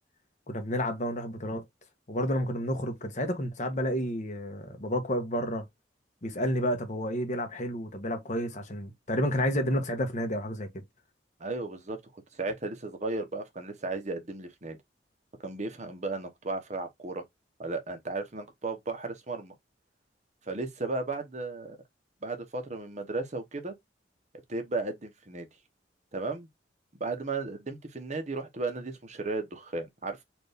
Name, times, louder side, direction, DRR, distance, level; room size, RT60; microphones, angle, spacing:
voice 1, 0.5-1.6 2.1-5.6 6.2-10.8, equal, 40° left, 1.1 m, -30 dB
voice 2, 11.4-12.0 12.3-14.8 15.4-17.2 17.6-19.5 20.5-21.8 22.2-23.8 24.5-25.5 26.1-26.5 27.0-30.2, right 3 dB, 40° right, 0.9 m, -35 dB
4.4 x 2.6 x 3.4 m
head